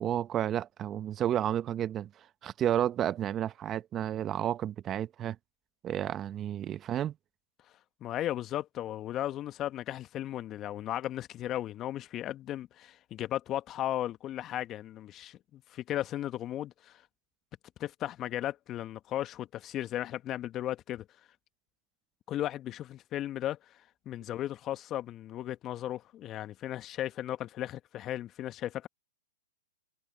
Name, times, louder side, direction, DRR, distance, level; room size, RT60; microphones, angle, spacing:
voice 1, 0.0-5.4 5.8-7.1, right 11 dB, 25° right, 1.1 m, -31 dB
voice 2, 8.0-17.0 17.8-21.1 22.3-23.8 24.0-28.9, left 13 dB, 30° left, 1.6 m, -36 dB
hypercardioid pair, 115°, 0 cm